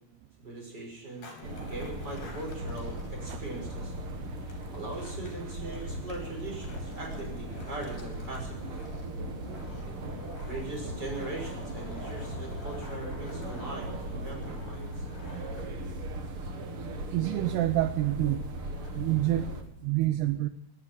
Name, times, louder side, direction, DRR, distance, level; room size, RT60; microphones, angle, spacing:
voice 1, 0.4-3.9 4.7-8.8 9.8-9.9 10.5-15.1, right 2 dB, 25° right, 0 dB, 6.3 m, -40 dB
Skateboard, 1.1-19.7, left 4 dB, 50° left, 5.1 m, -51 dB
sound 1, 1.4-19.6, right 1 dB, 65° right, 1.3 m, -38 dB
voice 2, 17.1-18.4 18.9-19.5 19.8-20.5, right 15 dB, 80° right, 11 dB, 2.7 m, -27 dB
18.5 x 10.5 x 7.6 m, 0.86 s
omnidirectional pair, 4.8 m